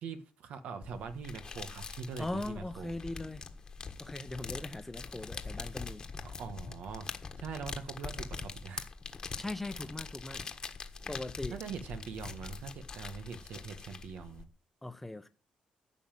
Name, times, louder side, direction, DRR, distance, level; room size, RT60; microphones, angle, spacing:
voice 1, 0.0-2.9 6.2-7.1 7.4-8.9 11.5-14.5, right 6 dB, 75° right, 1.5 m, -42 dB
sound 1, 0.8-14.4, left 4 dB, 30° left, 1.4 m, -43 dB
voice 2, 2.2-3.4 4.0-6.0 9.4-10.4 11.1-11.6 14.8-15.3, left 2 dB, 10° left, 0.9 m, -40 dB
14.0 x 5.6 x 9.1 m
cardioid pair, 140°, 2 cm